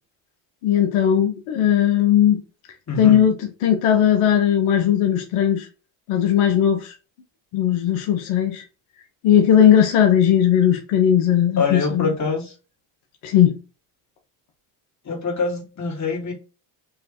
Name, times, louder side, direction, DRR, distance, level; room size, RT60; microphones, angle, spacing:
voice 1, 0.6-2.4 3.0-5.7 6.1-6.9 7.5-8.6 9.2-12.1 13.2-13.6, left 9 dB, 80° left, 0.9 m, -18 dB
voice 2, 2.9-3.2 11.6-12.5 15.0-16.3, left 4 dB, 35° left, 2.1 m, -24 dB
3.8 x 3.1 x 2.9 m
supercardioid pair, 70°, 50 cm